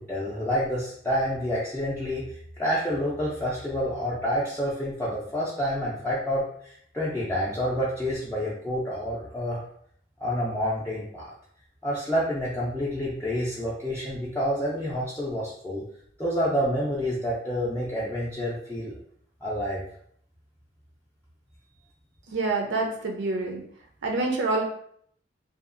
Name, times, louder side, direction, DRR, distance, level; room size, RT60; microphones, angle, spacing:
voice 1, 0.0-2.2 2.6-9.6 10.2-11.2 11.8-15.8 16.2-18.9 19.4-19.8, equal, 10° left, -8 dB, 0.4 m, -28 dB
voice 2, 22.3-23.6 24.0-24.7, right 3 dB, 70° right, 1 dB, 0.6 m, -27 dB
2.8 x 2.4 x 2.5 m, 0.65 s
head